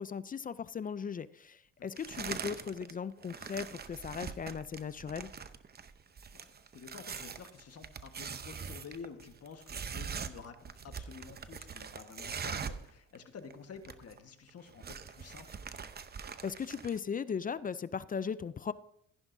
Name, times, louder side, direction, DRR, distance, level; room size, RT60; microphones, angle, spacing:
voice 1, 0.0-5.3 16.4-18.7, left 6 dB, 30° left, 17 dB, 0.4 m, -38 dB
sound 1, 2.0-2.9 3.2-12.9 13.1-13.2 13.5-14.2 14.5-17.0, right 6 dB, 30° right, 0.7 m, -43 dB
voice 2, 6.3-15.6, left 6 dB, 55° left, 7 dB, 1.4 m, -50 dB
14.5 x 11.0 x 2.7 m, 0.72 s
cardioid pair, 90°, 30 cm